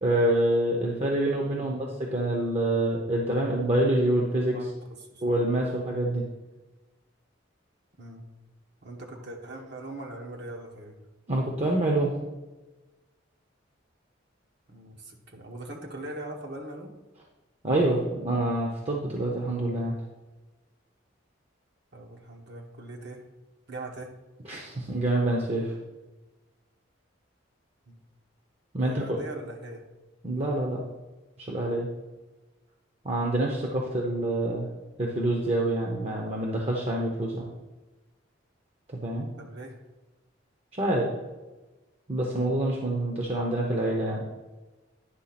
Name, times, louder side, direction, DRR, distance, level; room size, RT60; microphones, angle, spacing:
voice 1, 0.0-4.6 5.2-6.2 11.3-12.1 17.6-19.9 24.5-25.7 28.7-29.2 30.2-30.8 31.4-31.9 33.0-34.7 35.0-37.5 38.9-39.3 40.7-41.1 42.1-44.3, right 1 dB, 35° right, -1 dB, 0.9 m, -26 dB
voice 2, 1.5-1.8 4.5-5.2 8.0-8.3 8.8-11.0 14.7-16.9 21.9-23.2 23.7-24.1 27.9-28.0 28.8-29.8 39.4-39.8, right 1 dB, 60° right, 1 dB, 1.2 m, -41 dB
9.8 x 3.4 x 5.9 m, 1.1 s
head